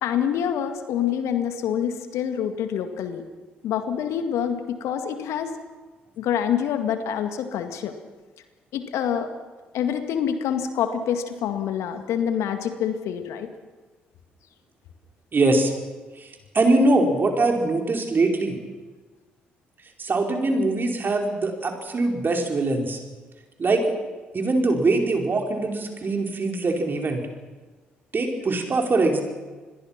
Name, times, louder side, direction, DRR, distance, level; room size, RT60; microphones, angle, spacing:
voice 1, 0.0-3.2 3.6-5.5 6.2-7.9 8.7-9.3 9.7-13.5, left 9 dB, 65° left, 8 dB, 2.0 m, -26 dB
voice 2, 15.3-15.7 16.2-18.6 20.0-23.0 23.6-23.8 24.3-27.2 28.1-29.2, right 2 dB, 40° right, 2 dB, 4.7 m, -22 dB
27.0 x 21.5 x 6.0 m, 1.3 s
figure-of-eight pair, 45°, 5 cm